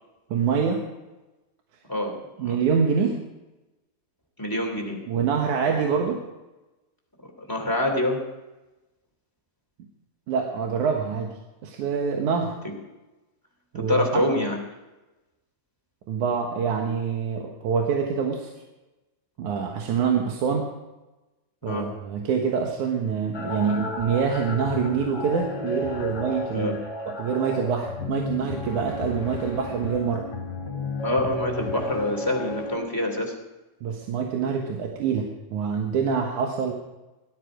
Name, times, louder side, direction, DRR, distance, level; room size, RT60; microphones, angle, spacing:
voice 1, 0.3-0.8 2.4-3.2 5.1-6.2 10.3-11.3 11.6-12.5 13.7-14.2 16.1-18.5 19.4-20.7 21.6-26.8 27.1-30.2 33.8-36.7, right 6 dB, 70° right, 1 dB, 2.7 m, -25 dB
voice 2, 1.9-2.6 4.4-5.0 7.5-8.3 12.6-12.7 13.7-14.6 21.6-21.9 26.5-26.7 31.0-33.3, left 1 dB, 5° left, 0 dB, 2.4 m, -26 dB
sound 1, 23.3-32.8, left 3 dB, 45° left, 3.8 m, -33 dB
17.5 x 12.5 x 5.0 m, 1.1 s
omnidirectional pair, 3.7 m